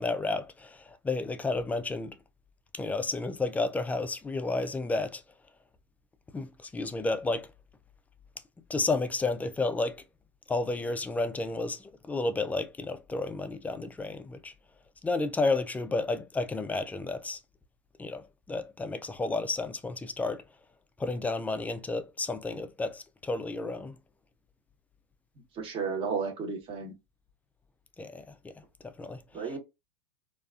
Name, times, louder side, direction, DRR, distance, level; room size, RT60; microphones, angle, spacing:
voice 1, 0.0-2.1 2.7-5.2 6.3-7.5 8.7-10.0 10.5-14.5 15.0-17.4 18.0-20.4 21.0-24.0 28.0-28.5 28.8-29.6, left 3 dB, 10° left, 0.3 m, -31 dB
voice 2, 25.6-26.9 29.3-29.6, right 5 dB, 35° right, 1.0 m, -33 dB
2.4 x 2.2 x 2.4 m
hypercardioid pair, 90°, 15 cm